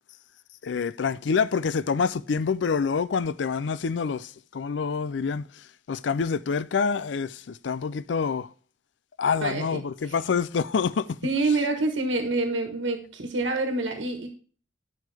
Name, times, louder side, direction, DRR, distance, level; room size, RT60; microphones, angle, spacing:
voice 1, 0.6-5.4 5.9-8.5 9.2-11.1, left 5 dB, 70° left, 0.4 m, -26 dB
voice 2, 9.4-10.2 11.2-14.3, right 2 dB, 85° right, 1.4 m, -27 dB
10.5 x 5.6 x 3.4 m
head